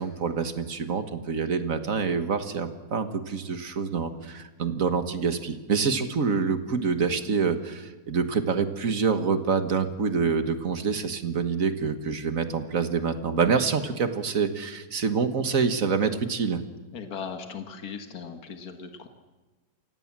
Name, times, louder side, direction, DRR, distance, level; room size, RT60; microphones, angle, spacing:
voice 1, 0.0-16.6, right 5 dB, 60° right, 9 dB, 1.8 m, -26 dB
voice 2, 16.9-19.1, left 6 dB, 75° left, 6 dB, 2.0 m, -38 dB
28.0 x 17.0 x 7.4 m, 1.2 s
omnidirectional pair, 1.6 m